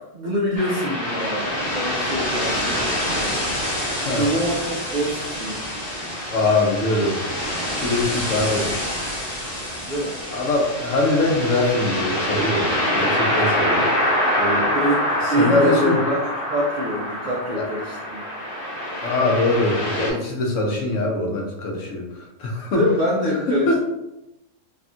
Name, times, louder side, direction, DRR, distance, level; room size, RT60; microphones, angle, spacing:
voice 1, 0.0-3.5 4.1-5.7 9.8-10.2 14.7-18.2 22.5-23.8, equal, 65° right, -4 dB, 0.4 m, -25 dB
sound 1, 0.6-20.1, equal, 35° left, 0.8 m, -25 dB
voice 2, 6.3-7.2 7.8-8.7 10.3-13.9 14.4-14.7 15.2-16.0 17.5-17.7 19.0-22.8 23.7-23.8, left 2 dB, 80° left, 0 dB, 1.0 m, -22 dB
3.4 x 2.3 x 2.5 m, 0.91 s
omnidirectional pair, 1.3 m